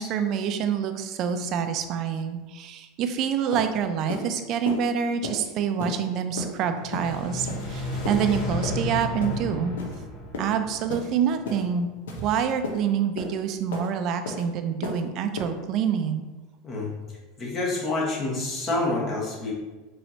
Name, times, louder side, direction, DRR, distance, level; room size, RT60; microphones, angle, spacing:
voice 1, 0.0-9.8 10.4-11.9 12.2-16.2, right 7 dB, 50° right, 8 dB, 0.4 m, -27 dB
sound 1, 3.0-3.1 3.5-3.7 4.1-4.3 4.6-4.8 5.2-5.4 5.8-6.0 6.4-6.5 6.9-7.1 7.5-7.7 8.0-8.2 8.6-8.8 9.2-9.4 9.8-10.0 10.3-10.5 10.9-11.1 11.4-11.6 12.1-12.2 12.6-12.8 13.2-13.3 13.7-13.9 14.2-14.4 14.8-15.0 15.4-15.5, left 3 dB, 90° left, 0.7 m, -33 dB
sound 2, 6.7-11.8, left 1 dB, 60° left, 1.1 m, -33 dB
voice 2, 17.4-19.5, left 2 dB, 35° left, -3 dB, 1.3 m, -27 dB
4.2 x 3.1 x 2.8 m, 1.2 s
supercardioid pair, 110°, 0 cm